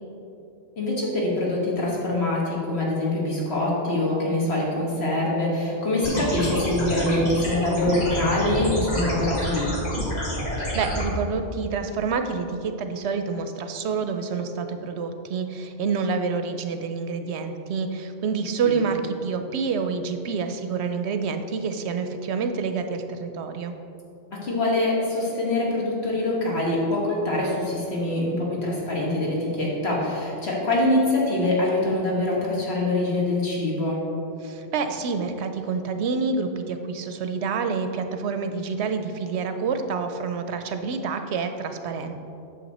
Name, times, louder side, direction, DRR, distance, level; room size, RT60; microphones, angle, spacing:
voice 1, 0.8-9.7 24.3-34.0, left 1 dB, 60° left, -4 dB, 1.9 m, -24 dB
sound 1, 6.0-11.0, left 1 dB, 35° left, 1.6 m, -28 dB
voice 2, 10.6-23.7 34.4-42.2, right 5 dB, 70° right, 7 dB, 0.8 m, -28 dB
8.5 x 6.4 x 4.1 m, 2.8 s
omnidirectional pair, 1.2 m